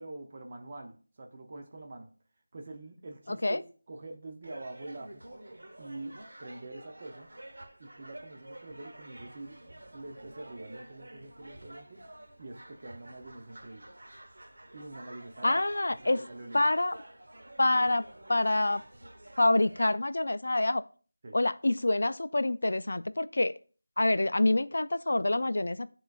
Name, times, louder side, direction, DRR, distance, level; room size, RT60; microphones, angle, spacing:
voice 1, 0.0-2.1 2.5-3.6 3.9-5.2 5.8-7.3 7.8-12.1 12.4-13.9 14.7-15.6 15.9-16.6 21.2-21.4, right 2 dB, 25° right, 2 dB, 0.7 m, -45 dB
voice 2, 3.3-3.6 15.4-16.2 16.5-17.0 17.6-18.8 19.4-20.8 21.3-23.5 24.0-25.9, left 2 dB, 60° left, 14 dB, 0.3 m, -26 dB
sound 1, 4.4-20.0, right 1 dB, 85° right, 1.2 m, -50 dB
10.0 x 3.8 x 2.4 m, 0.40 s
figure-of-eight pair, 180°, 0 cm